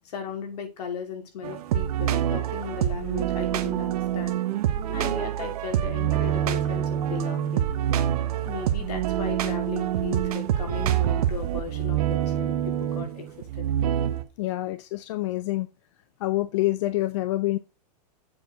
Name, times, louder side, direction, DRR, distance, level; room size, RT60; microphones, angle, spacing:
voice 1, 0.0-4.4 4.9-7.7 8.4-12.5 12.8-13.3 13.6-13.7, left 6 dB, 70° left, 2.6 m, -36 dB
sound 1, 1.4-14.2, right 11 dB, 65° right, 1.0 m, -26 dB
voice 2, 14.4-15.7 16.2-17.6, left 17 dB, 45° left, 0.5 m, -26 dB
7.7 x 4.5 x 4.6 m
supercardioid pair, 160°, 21 cm